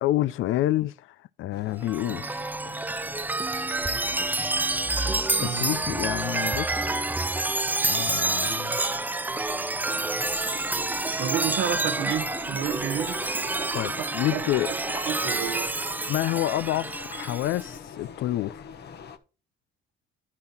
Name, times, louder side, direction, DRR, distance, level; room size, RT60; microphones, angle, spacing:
voice 1, 0.0-2.5 5.4-6.9 7.8-8.8 13.7-14.7 16.1-18.7, left 15 dB, 80° left, 0.5 m, -28 dB
sound 1, 1.5-19.2, left 6 dB, 55° left, 1.1 m, -45 dB
Chime, 1.8-17.7, right 2 dB, 10° right, 0.3 m, -28 dB
voice 2, 5.4-5.7 11.2-13.1 14.0-14.5 15.1-16.1, right 9 dB, 80° right, 1.0 m, -31 dB
sound 2, 8.3-15.9, right 3 dB, 25° right, 1.2 m, -42 dB
11.0 x 5.7 x 4.3 m
cardioid pair, 90°, 20 cm